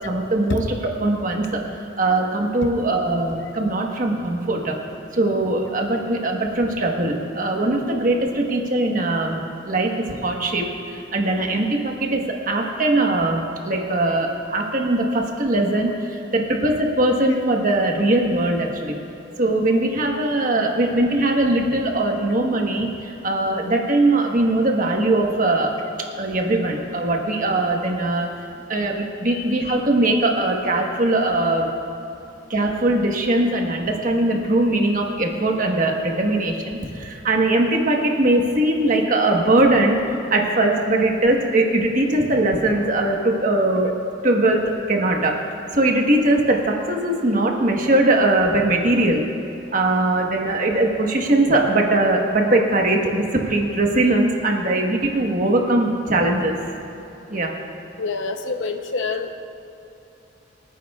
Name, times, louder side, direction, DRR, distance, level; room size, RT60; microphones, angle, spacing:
voice 1, 0.0-1.6 2.0-4.8 5.1-9.4 9.6-9.9 10.2-19.0 19.4-25.7 26.2-28.3 28.7-31.7 32.5-43.9 44.2-45.3 45.7-49.2 49.7-56.6 57.3-57.5, right 2 dB, 40° right, 1 dB, 1.3 m, -20 dB
voice 2, 29.3-29.8 58.0-59.3, left 4 dB, 65° left, 6 dB, 0.8 m, -28 dB
26.5 x 9.6 x 2.4 m, 2.9 s
head